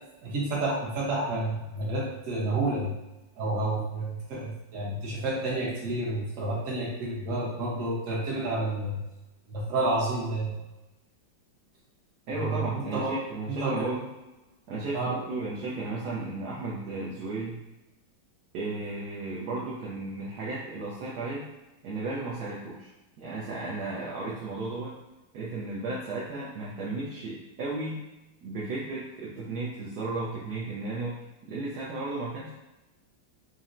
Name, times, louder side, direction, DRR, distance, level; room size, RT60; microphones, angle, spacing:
voice 1, 0.2-2.9 3.4-9.0 9.5-10.6 12.3-13.2 13.6-13.9 14.9-15.2, right 2 dB, 50° right, -5 dB, 1.1 m, -30 dB
voice 2, 12.3-14.1 14.7-17.6 18.5-21.4 21.8-22.9 23.2-24.9 25.3-28.0 28.4-31.2 31.4-32.5, right 2 dB, 70° right, -6 dB, 1.0 m, -34 dB
4.0 x 2.1 x 2.5 m, 1.0 s
omnidirectional pair, 2.1 m